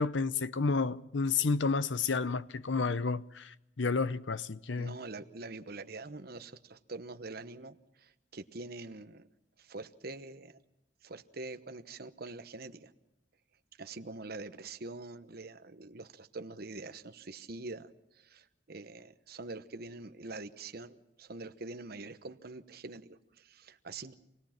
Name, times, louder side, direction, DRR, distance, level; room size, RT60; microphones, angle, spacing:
voice 1, 0.0-5.0, left 4 dB, 90° left, 0.8 m, -31 dB
voice 2, 4.8-9.3 9.6-10.6 11.0-12.9 13.8-17.9 18.1-24.1, right 3 dB, 55° right, 1.1 m, -45 dB
27.0 x 18.5 x 5.9 m
head